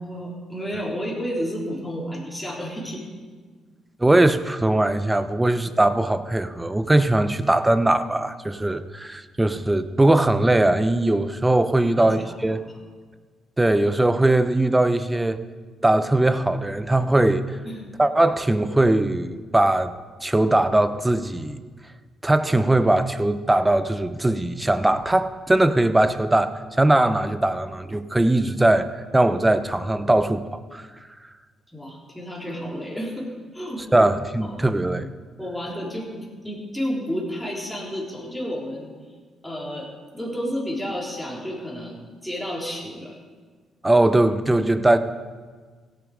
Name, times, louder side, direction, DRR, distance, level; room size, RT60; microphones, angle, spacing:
voice 1, 0.0-3.1 11.8-12.6 17.7-17.8 31.7-34.1 34.4-34.5 35.4-38.9 39.4-39.9 40.1-43.2, equal, 5° left, -4 dB, 3.6 m, -31 dB
voice 2, 4.0-12.6 13.6-15.4 15.8-17.4 18.0-19.9 20.2-21.6 22.2-30.9 33.9-35.1 43.8-45.0, right 1 dB, 15° right, 11 dB, 0.7 m, -20 dB
16.5 x 8.1 x 5.0 m, 1.5 s
cardioid pair, 90°, 0 cm